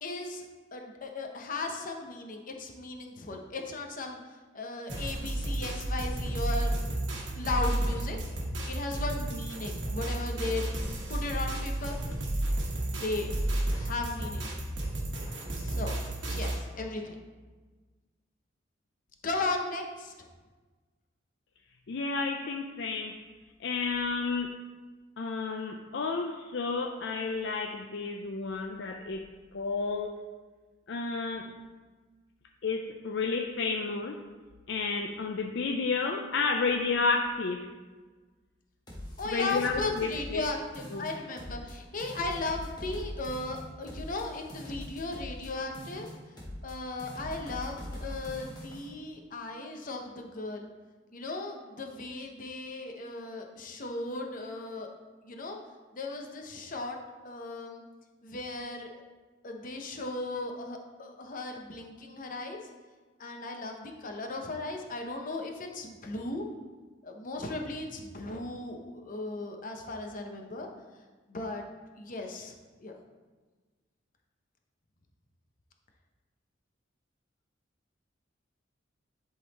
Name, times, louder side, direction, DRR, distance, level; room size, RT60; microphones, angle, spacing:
voice 1, 0.0-0.4 0.7-4.2 4.5-7.0 7.3-8.2 8.7-10.7 11.1-12.0 12.9-13.3 13.7-14.5 15.6-16.0 16.2-17.2 19.2-20.1 39.2-46.1 46.6-50.7 51.1-54.9 55.2-55.6 55.9-57.0 57.2-57.8 58.2-59.0 59.4-62.6 63.2-66.4 67.0-70.7 71.3-71.6 72.0-72.5 72.8-72.9, left 2 dB, 45° left, 3 dB, 0.8 m, -36 dB
sound 1, 4.9-16.6, right 1 dB, 65° right, 1.3 m, -32 dB
voice 2, 21.9-23.2 23.6-24.6 25.2-29.3 29.5-30.1 30.9-31.5 32.6-34.2 34.7-37.7 39.2-40.4 40.9-41.0, left 4 dB, 65° left, 3 dB, 0.4 m, -31 dB
sound 2, 38.9-40.5 40.7-41.7 42.0-45.5 45.7-46.7 47.0-48.9, equal, 20° left, 1.4 m, -42 dB
10.5 x 4.0 x 4.1 m, 1.3 s
head